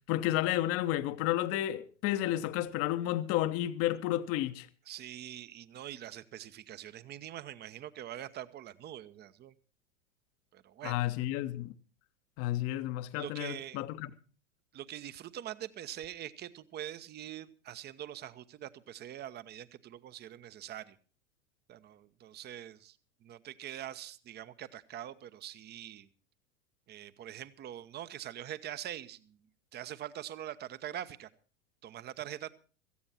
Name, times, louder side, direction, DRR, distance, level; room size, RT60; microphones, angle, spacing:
voice 1, 0.1-4.7 10.8-11.7 12.4-14.1, left 14 dB, 40° left, 1.2 m, -31 dB
voice 2, 4.9-9.5 10.5-11.0 13.1-13.8 14.7-21.0 21.7-26.1 26.9-29.4 29.7-31.3 31.8-32.5, right 11 dB, 30° right, 1.0 m, -44 dB
17.0 x 15.0 x 4.2 m
figure-of-eight pair, 85°, 36 cm